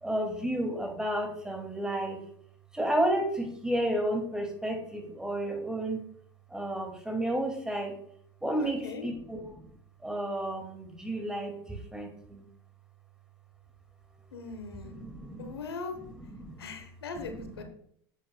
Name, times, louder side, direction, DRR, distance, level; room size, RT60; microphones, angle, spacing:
voice 1, 0.0-2.2 2.7-6.0 6.5-7.9 8.4-9.7 10.0-12.4 14.9-15.5 16.4-16.6, right 1 dB, 5° right, 3 dB, 2.1 m, -32 dB
voice 2, 8.6-9.1 14.3-14.9 15.4-16.0 16.6-17.6, left 4 dB, 85° left, 6 dB, 1.2 m, -40 dB
10.5 x 8.4 x 2.3 m, 0.67 s
hypercardioid pair, 85°, 13 cm